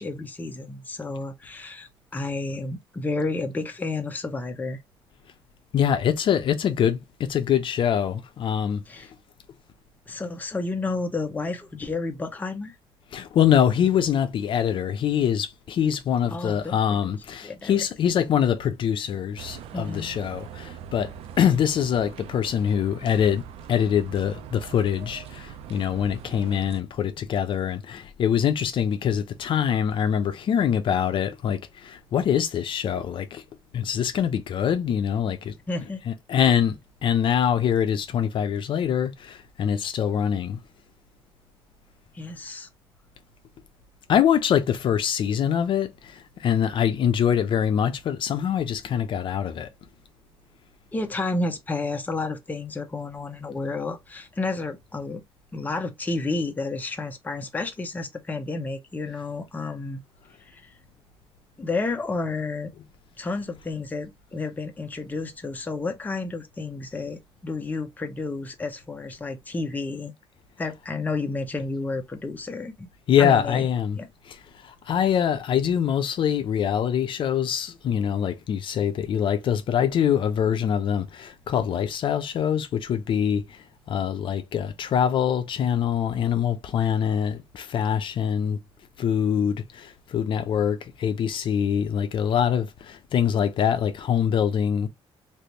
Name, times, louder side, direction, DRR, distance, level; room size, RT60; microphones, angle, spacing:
voice 1, 0.0-4.8 8.9-9.1 10.1-12.7 16.3-17.1 17.4-17.8 19.7-20.1 35.7-36.0 42.1-42.7 50.9-55.2 55.5-60.0 60.5-60.6 61.6-62.7 63.2-70.1 70.6-72.9 73.2-73.7 74.0-74.1, left 3 dB, 15° left, 0.7 m, -31 dB
voice 2, 5.7-8.8 13.1-33.4 33.7-35.5 36.1-40.6 44.1-49.7 73.1-74.0 74.2-88.6 89.0-94.9, left 8 dB, 55° left, 0.5 m, -24 dB
sound 1, 19.4-26.8, right 9 dB, 85° right, 0.4 m, -42 dB
3.3 x 2.5 x 2.8 m
cardioid pair, 120°, 10 cm